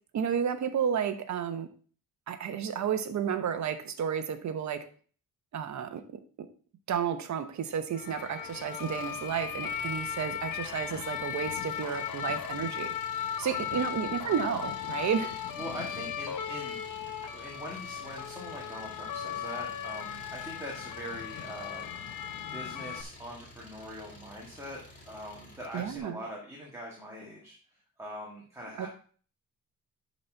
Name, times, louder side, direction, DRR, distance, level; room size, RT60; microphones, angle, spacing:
voice 1, 0.1-1.7 2.3-4.8 5.5-6.0 6.4-6.5 6.9-12.9 13.4-15.4 25.7-26.2 28.7-28.9, right 8 dB, 55° right, 8 dB, 1.0 m, -32 dB
sound 1, 7.9-23.0, left 9 dB, 65° left, 0.8 m, -37 dB
Engine, 8.5-26.0, left 1 dB, 20° left, 2.1 m, -51 dB
voice 2, 15.6-17.0 17.3-22.2 22.5-24.8 25.1-27.6 28.0-28.9, equal, 10° right, -3 dB, 1.7 m, -42 dB
11.0 x 4.2 x 4.5 m, 0.43 s
wide cardioid pair, 160°, 35 cm